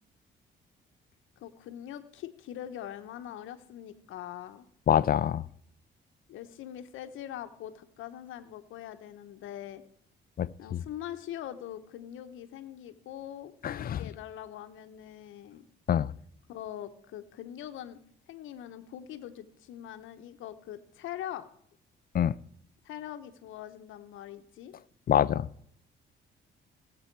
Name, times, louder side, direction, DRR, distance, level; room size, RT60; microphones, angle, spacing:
voice 1, 1.4-4.7 6.3-9.8 10.6-15.7 16.5-18.0 18.3-21.5 22.8-24.7, left 11 dB, 85° left, 1.0 m, -42 dB
voice 2, 4.9-5.4 10.4-10.8 13.6-14.0 15.9-16.1 22.1-22.3 25.1-25.5, left 10 dB, 45° left, 0.5 m, -25 dB
17.0 x 7.9 x 4.6 m
cardioid pair, 90°, 20 cm